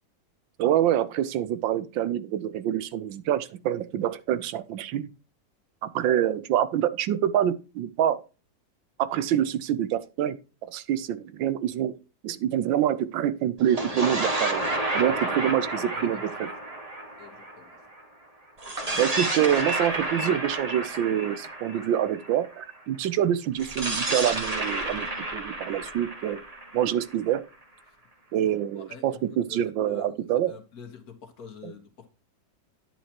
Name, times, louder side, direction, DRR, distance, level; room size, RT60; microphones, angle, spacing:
voice 1, 0.6-5.1 5.8-8.2 9.0-10.4 10.7-11.9 12.2-14.7 14.9-16.5 19.0-25.1 25.3-26.4 26.7-27.4 28.3-30.5 31.6-31.7, right 11 dB, 85° right, 1.4 m, -26 dB
sound 1, 13.6-18.0 18.6-22.5 23.6-27.4, right 1 dB, 20° right, 1.4 m, -31 dB
voice 2, 15.9-16.5 17.2-17.8 28.4-29.2 29.5-30.2 30.5-32.1, left 6 dB, 55° left, 1.7 m, -47 dB
10.5 x 7.4 x 2.9 m
omnidirectional pair, 2.0 m